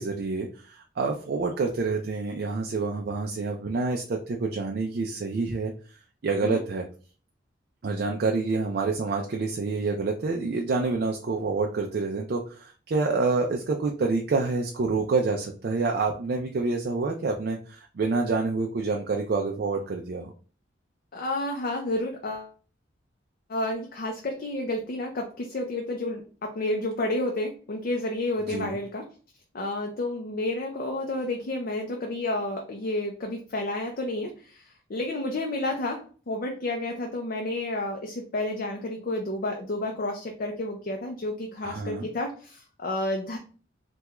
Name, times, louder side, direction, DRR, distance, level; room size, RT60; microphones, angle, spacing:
voice 1, 0.0-5.7 6.2-6.9 7.8-20.3 28.5-28.8 41.6-42.1, right 3 dB, 55° right, 2 dB, 0.4 m, -27 dB
voice 2, 21.1-22.5 23.5-29.1 29.5-43.4, left 1 dB, 50° left, 2 dB, 0.5 m, -30 dB
3.4 x 2.2 x 2.9 m, 0.39 s
head